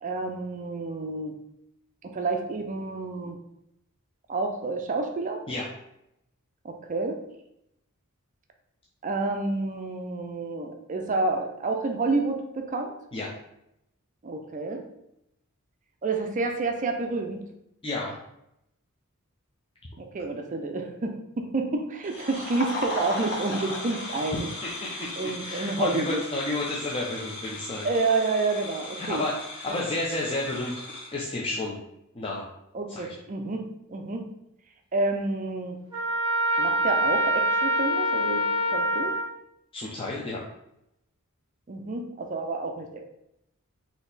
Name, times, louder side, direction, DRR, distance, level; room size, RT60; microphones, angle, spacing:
voice 1, 0.0-1.3 2.0-3.4 4.3-5.4 6.6-7.2 9.0-12.9 14.2-14.8 16.0-17.4 20.0-24.4 24.9-26.2 27.8-29.2 29.7-29.8 32.7-34.2 34.9-35.8 36.6-38.4 38.7-39.2 41.7-43.0, right 3 dB, 35° right, 4 dB, 0.4 m, -29 dB
voice 2, 17.8-18.2 24.3-27.9 29.0-30.8 31.1-31.8 32.1-32.5 32.9-33.1 39.7-40.4, left 2 dB, 25° left, -4 dB, 0.5 m, -31 dB
sound 1, 22.0-31.1, left 1 dB, 55° left, 0.9 m, -37 dB
Trumpet, 35.9-39.3, equal, 20° right, 1.3 m, -25 dB
4.1 x 2.8 x 3.9 m, 0.82 s
head